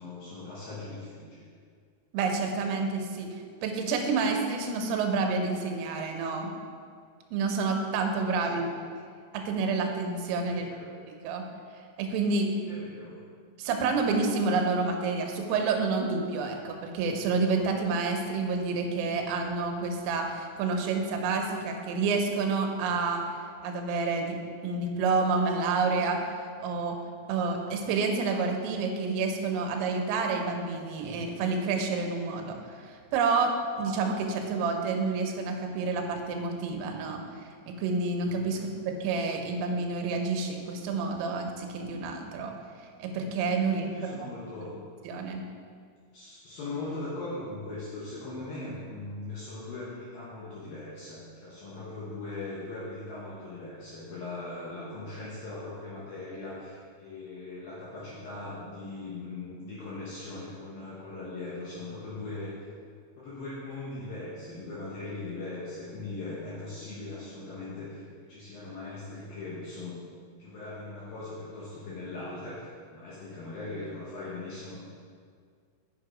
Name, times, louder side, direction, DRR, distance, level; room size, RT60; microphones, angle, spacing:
voice 1, 0.0-1.5 8.4-8.7 10.5-11.0 12.7-13.2 38.5-38.7 43.9-44.8 46.1-62.7 63.2-70.0 70.4-74.8, left 2 dB, 75° left, -7 dB, 2.2 m, -40 dB
voice 2, 2.1-3.3 3.6-6.5 7.3-8.7 9.3-10.7 11.1-11.5 12.0-12.5 13.6-23.2 23.6-26.2 26.6-27.0 27.3-32.6 32.9-37.2 37.7-42.5 43.0-44.3 45.1-45.4, right 4 dB, 90° right, 3 dB, 3.5 m, -29 dB
8.4 x 6.3 x 4.8 m, 2.1 s
omnidirectional pair, 5.7 m